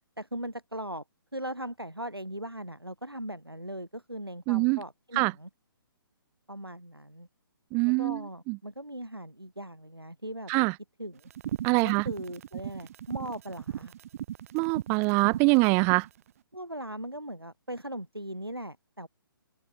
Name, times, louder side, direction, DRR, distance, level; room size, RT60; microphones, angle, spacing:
voice 1, 0.2-1.0 1.3-5.5 6.5-7.3 7.9-10.7 11.0-11.3 11.8-13.9 16.5-19.1, right 1 dB, 90° right, 4.2 m, -39 dB
voice 2, 4.5-4.8 5.2-5.3 7.7-8.2 8.5-8.6 10.5-10.7 11.6-12.0 14.5-16.1, right 33 dB, 15° right, 0.4 m, -24 dB
sound 1, 11.3-16.1, right 11 dB, 40° right, 2.9 m, -37 dB
open air
figure-of-eight pair, 135°, 12 cm